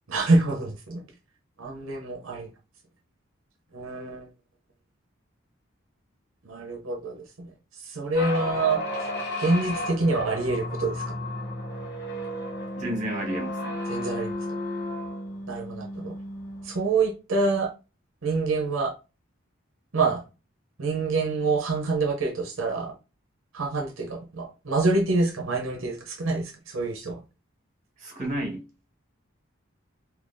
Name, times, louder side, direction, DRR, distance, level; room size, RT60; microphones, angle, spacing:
voice 1, 0.1-1.0 1.6-2.5 3.7-4.3 6.4-9.1 9.4-11.2 13.9-14.3 15.5-16.1 16.6-17.7 18.2-18.9 19.9-20.2 20.8-22.9 23.5-27.2, right 3 dB, 80° right, 0.7 m, -26 dB
sound 1, 8.1-16.9, left 1 dB, 60° left, 1.1 m, -33 dB
voice 2, 12.8-13.8 28.0-28.6, right 1 dB, 35° right, 1.3 m, -31 dB
3.8 x 2.8 x 2.6 m
head